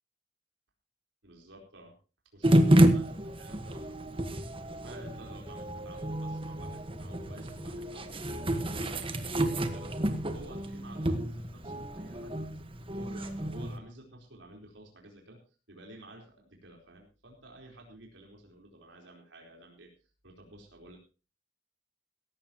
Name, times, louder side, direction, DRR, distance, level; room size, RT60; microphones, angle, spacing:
voice 1, 1.2-1.9 2.3-4.3 4.7-9.9 10.3-15.4 15.7-19.9 20.2-21.0, right 1 dB, 90° right, 0 dB, 4.3 m, -51 dB
sound 1, 2.4-13.8, right 1 dB, 30° right, 1.4 m, -29 dB
17.0 x 15.0 x 3.0 m, 0.32 s
head